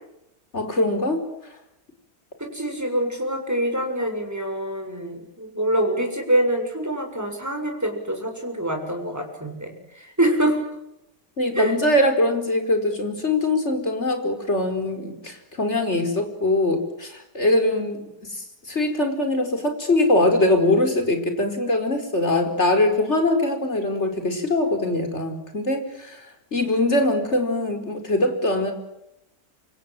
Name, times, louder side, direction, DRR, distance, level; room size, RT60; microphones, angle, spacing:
voice 1, 0.5-1.2 11.4-26.3 26.5-28.7, left 1 dB, 40° left, 5 dB, 5.1 m, -22 dB
voice 2, 2.4-10.6 11.5-11.7, right 1 dB, 10° right, 3 dB, 6.9 m, -25 dB
28.5 x 26.5 x 7.8 m, 0.84 s
omnidirectional pair, 1.8 m